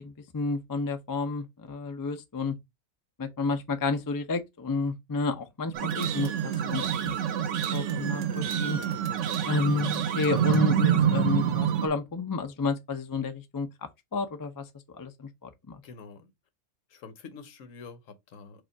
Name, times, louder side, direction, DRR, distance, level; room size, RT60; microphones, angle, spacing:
voice 1, 0.0-2.5 3.2-8.8 9.4-13.7 14.1-15.8, left 4 dB, 30° left, 0.3 m, -31 dB
sound 1, 5.7-11.9, right 9 dB, 70° right, 0.9 m, -27 dB
voice 2, 15.8-16.3 16.9-18.6, left 4 dB, 75° left, 1.2 m, -47 dB
4.9 x 2.5 x 4.4 m
omnidirectional pair, 1.4 m